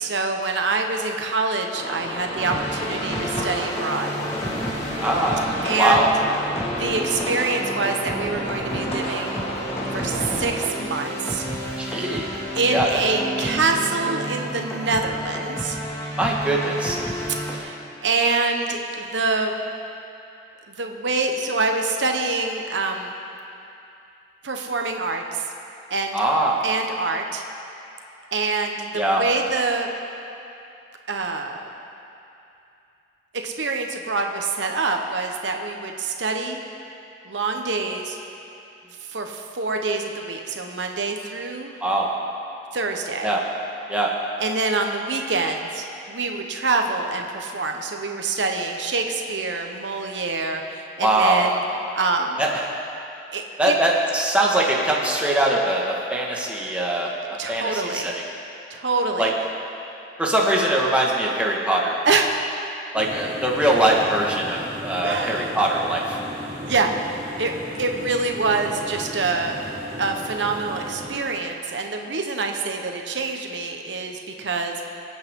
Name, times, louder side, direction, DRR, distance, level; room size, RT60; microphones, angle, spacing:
voice 1, 0.0-4.1 5.6-6.1 6.8-9.5 9.9-11.4 12.5-15.8 17.5-17.8 18.0-19.5 20.7-23.1 24.4-25.4 25.9-26.2 26.6-27.4 28.3-29.9 31.1-31.6 33.4-36.6 37.2-38.2 39.1-41.7 42.7-43.4 44.4-51.6 51.9-52.4 53.3-53.7 57.4-58.1 58.7-59.3 62.0-62.5 65.0-65.6 66.6-66.9 67.4-69.6 70.0-74.9, right 3 dB, 85° right, 3 dB, 1.1 m, -25 dB
sound 1, 1.7-10.5, left 1 dB, 35° left, 1.6 m, -31 dB
sound 2, 2.4-17.6, right 1 dB, 15° left, 2.1 m, -31 dB
voice 2, 5.0-5.4 5.8-6.1 11.8-12.3 12.7-12.9 16.2-17.0 26.1-26.6 28.9-29.2 41.8-42.1 43.2-43.4 43.9-44.1 51.0-51.5 52.4-52.6 53.6-57.1 57.5-58.1 59.2-59.3 60.2-62.0 62.9-66.2, right 1 dB, 5° right, -3 dB, 1.6 m, -22 dB
sound 3, 62.9-71.2, equal, 70° right, 3.1 m, -36 dB
24.5 x 8.7 x 3.7 m, 2.7 s
head